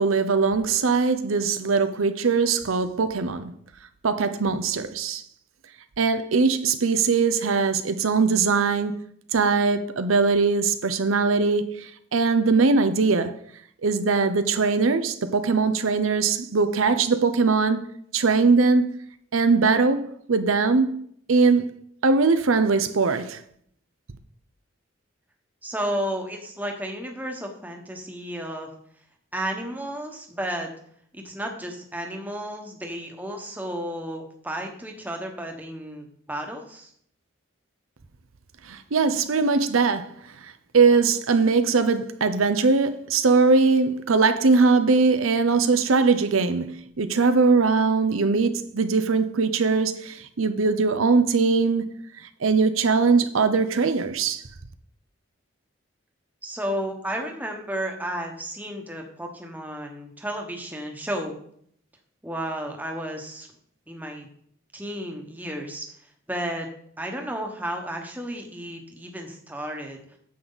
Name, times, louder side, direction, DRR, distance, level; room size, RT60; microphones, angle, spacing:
voice 1, 0.0-3.5 4.0-5.2 6.0-9.0 9.3-13.3 13.8-17.8 18.1-18.9 19.3-20.9 21.3-21.7 22.0-23.4 38.7-40.1 40.7-46.7 47.0-51.9 52.4-54.4, right 4 dB, 85° right, 0.7 m, -21 dB
voice 2, 25.6-28.7 29.3-30.7 31.1-36.9 56.4-61.3 62.2-63.5 63.9-64.3 64.7-65.8 66.3-66.7 67.0-70.0, right 1 dB, 10° right, 1.2 m, -32 dB
9.4 x 7.8 x 4.0 m
head